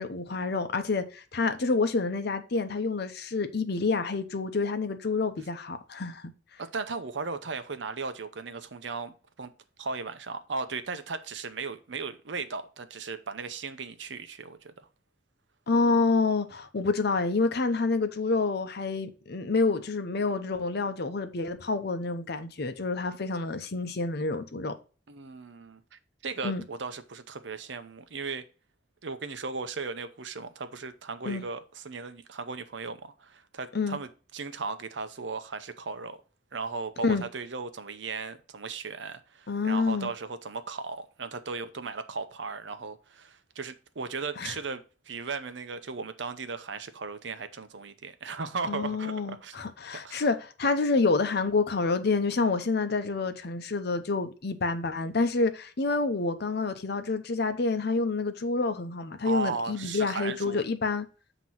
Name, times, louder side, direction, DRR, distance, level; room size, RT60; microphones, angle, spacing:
voice 1, 0.0-6.2 15.7-24.7 26.4-26.6 31.2-31.4 33.7-34.0 37.0-37.2 39.5-40.1 44.4-44.5 48.7-61.1, left 3 dB, 60° left, 0.8 m, -28 dB
voice 2, 6.6-9.1 9.4-9.5 9.8-14.7 25.1-28.4 29.0-36.2 36.5-49.6 50.0-50.3 59.2-60.6, right 4 dB, 70° right, 0.7 m, -36 dB
7.6 x 3.0 x 5.6 m
head